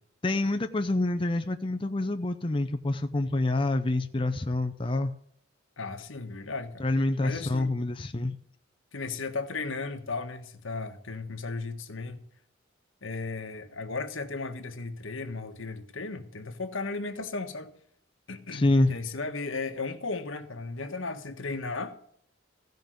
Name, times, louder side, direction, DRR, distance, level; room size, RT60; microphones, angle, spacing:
voice 1, 0.2-5.1 6.8-8.4 18.5-18.9, left 2 dB, 25° left, 0.6 m, -27 dB
voice 2, 5.8-6.9 7.2-7.8 8.9-12.2 13.0-17.7 18.3-22.0, left 3 dB, 80° left, 1.4 m, -35 dB
15.5 x 5.3 x 7.8 m
head